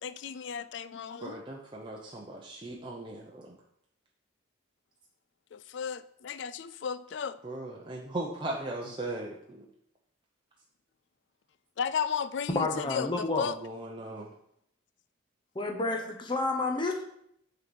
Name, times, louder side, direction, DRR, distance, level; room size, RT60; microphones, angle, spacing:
voice 1, 0.0-1.4 5.5-7.4 11.8-13.6, left 7 dB, 65° left, 0.4 m, -34 dB
voice 2, 1.2-3.6 7.4-9.7 13.4-14.3, right 2 dB, 25° right, 0.7 m, -38 dB
voice 3, 12.5-13.5 15.5-17.0, left 2 dB, 25° left, 0.7 m, -30 dB
6.4 x 4.0 x 6.1 m
head